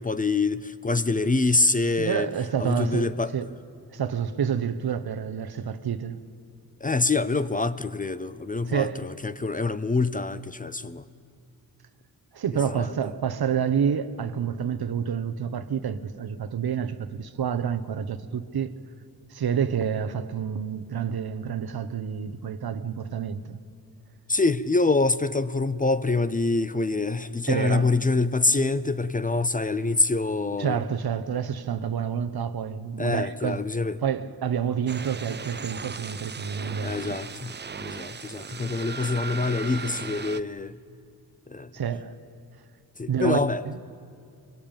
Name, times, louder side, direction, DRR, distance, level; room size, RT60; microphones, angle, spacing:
voice 1, 0.0-2.3 2.6-3.4 6.8-11.1 12.5-12.9 24.3-30.8 33.0-34.0 36.8-40.8 41.5-41.7 43.0-43.6, left 3 dB, 20° left, 0.6 m, -25 dB
voice 2, 2.0-3.5 3.9-6.2 8.7-9.0 12.3-18.7 19.3-23.6 27.5-27.9 30.6-33.6 34.0-37.2 41.7-42.1 43.1-43.4 43.6-43.8, right 7 dB, 70° right, 1.2 m, -28 dB
sound 1, 34.9-40.4, right 5 dB, 30° right, 0.5 m, -37 dB
24.0 x 21.5 x 9.0 m
wide cardioid pair, 125°, 38 cm